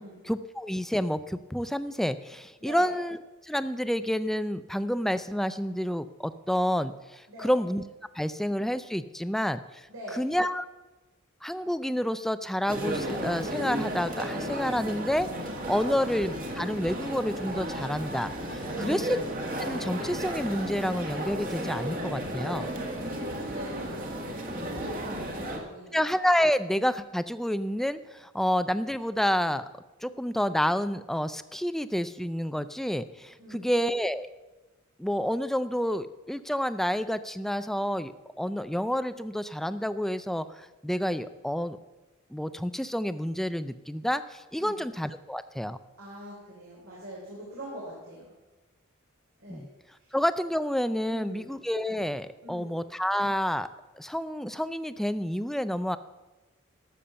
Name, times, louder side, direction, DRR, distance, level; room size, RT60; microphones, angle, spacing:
voice 1, 0.2-3.2 3.4-7.8 8.1-9.9 10.1-10.6 11.4-15.3 15.7-19.2 19.5-22.7 25.9-29.7 30.0-34.3 35.0-41.8 42.3-45.8 49.5-49.7 50.1-53.7 54.0-56.0, equal, ahead, 13 dB, 0.4 m, -29 dB
voice 2, 2.6-2.9 7.3-7.5 9.9-10.3 15.8-16.0 18.7-19.1 22.6-26.0 33.4-33.7 44.5-44.8 46.0-48.3 49.4-49.7 50.0-50.1 51.1-51.5 52.4-52.8, equal, 80° right, -5 dB, 3.3 m, -43 dB
sound 1, 12.7-25.6, right 1 dB, 40° right, 1.7 m, -34 dB
12.5 x 7.0 x 6.9 m, 1.1 s
head